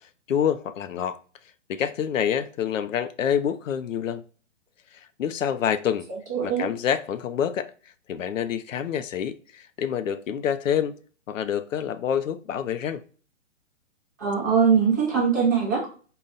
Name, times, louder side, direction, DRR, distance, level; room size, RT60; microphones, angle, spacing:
voice 1, 0.3-1.2 1.7-4.2 5.2-6.1 6.4-7.7 8.1-11.0 11.3-13.0, left 8 dB, 85° left, 0.6 m, -27 dB
voice 2, 6.3-6.7 14.2-15.9, right 6 dB, 15° right, 0.6 m, -21 dB
3.9 x 2.2 x 3.8 m
hypercardioid pair, 165°, 38 cm